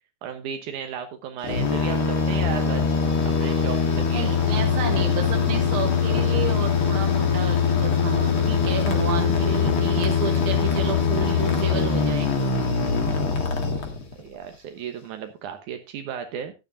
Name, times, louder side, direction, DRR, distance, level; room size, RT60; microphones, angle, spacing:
voice 1, 0.2-2.9 3.3-4.3 14.2-16.5, right 8 dB, 85° right, 6 dB, 2.6 m, -35 dB
sound 1, 1.4-14.3, left 6 dB, 45° left, 2.6 m, -22 dB
voice 2, 4.1-12.3, right 6 dB, 55° right, 5 dB, 1.8 m, -31 dB
14.5 x 10.0 x 2.6 m, 0.27 s
omnidirectional pair, 3.4 m